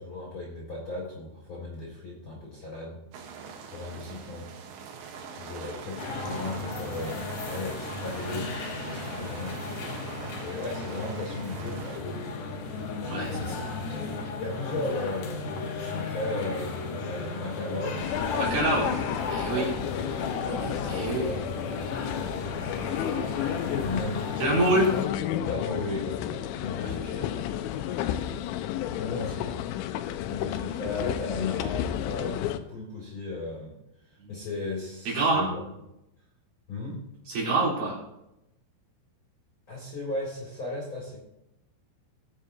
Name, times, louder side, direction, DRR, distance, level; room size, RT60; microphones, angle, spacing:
voice 1, 0.0-3.0 3.7-4.5 5.1-9.6 10.4-12.0 13.2-13.7 14.4-18.7 19.5-19.7 20.7-21.6 23.2-24.5 25.4-27.3 28.9-29.5 30.2-33.7 34.3-35.5 36.7-37.0 39.7-41.2, left 2 dB, 35° left, -4 dB, 2.7 m, -36 dB
sound 1, 3.1-12.0, right 6 dB, 75° right, 3.4 m, -42 dB
sound 2, 6.0-25.0, left 3 dB, 70° left, 2.0 m, -35 dB
voice 2, 13.0-14.2 18.4-18.9 19.3-19.7 20.5-21.2 24.4-24.9 26.8-26.9 34.2-34.3 35.0-35.5 37.3-38.0, right 2 dB, 50° right, -6 dB, 5.1 m, -27 dB
sound 3, 18.0-32.6, left 11 dB, 85° left, 3.0 m, -32 dB
19.5 x 7.5 x 2.8 m, 0.86 s
omnidirectional pair, 5.3 m